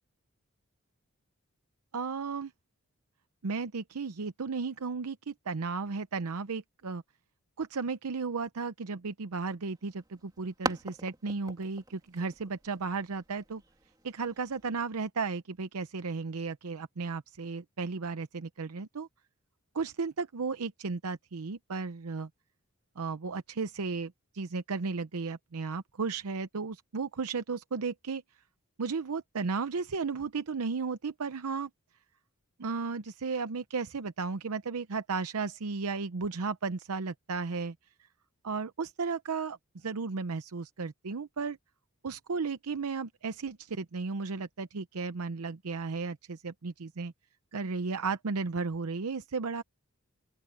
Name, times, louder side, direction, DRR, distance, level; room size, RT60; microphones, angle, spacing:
voice 1, 1.9-2.5 3.4-7.0 7.6-13.6 14.0-19.1 19.7-22.3 23.0-28.2 28.8-31.7 32.6-37.7 38.4-41.6 42.0-47.1 47.5-49.6, right 4 dB, 90° right, 0.7 m, -34 dB
sound 1, 9.7-14.8, right 2 dB, 20° right, 3.0 m, -42 dB
open air
head